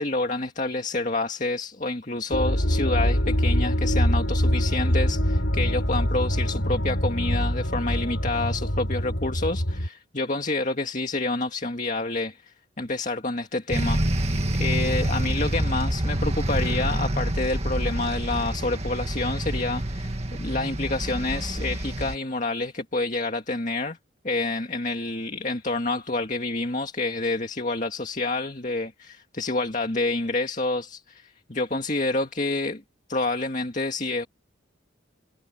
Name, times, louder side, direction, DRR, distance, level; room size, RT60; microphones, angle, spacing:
voice 1, 0.0-24.0 24.2-32.8 33.1-34.3, left 2 dB, 40° left, 2.1 m, -28 dB
sound 1, 2.3-9.9, equal, 65° left, 7.9 m, -24 dB
sound 2, 13.7-22.1, right 1 dB, 30° right, 2.1 m, -27 dB
head